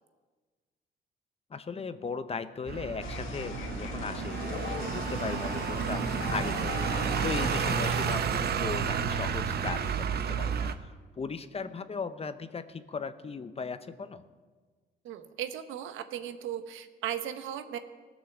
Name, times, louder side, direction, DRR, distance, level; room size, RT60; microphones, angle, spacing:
voice 1, 1.5-6.9 7.2-14.2, left 5 dB, 30° left, 12 dB, 0.8 m, -37 dB
sound 1, 2.7-10.7, right 7 dB, 55° right, 0.8 m, -31 dB
sound 2, 3.0-8.2, left 6 dB, 90° left, 1.3 m, -39 dB
voice 2, 15.0-17.8, right 10 dB, 85° right, 10 dB, 0.9 m, -37 dB
18.0 x 6.3 x 7.2 m, 1.4 s
cardioid pair, 90°, 20 cm